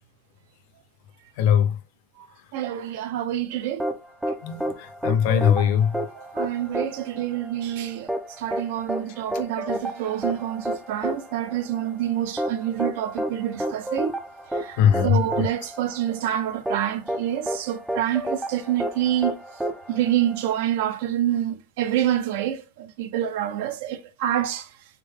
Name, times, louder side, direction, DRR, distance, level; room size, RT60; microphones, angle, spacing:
voice 1, 1.4-1.7 4.4-4.6 5.0-5.9 14.8-15.5, left 9 dB, 45° left, 0.6 m, -20 dB
voice 2, 2.5-3.9 6.2-8.1 8.4-14.2 14.5-19.3 19.9-24.7, right 11 dB, 55° right, 0.5 m, -27 dB
sound 1, 3.8-20.7, right 1 dB, 5° right, 0.4 m, -31 dB
3.6 x 3.5 x 3.4 m
supercardioid pair, 180°, 0 cm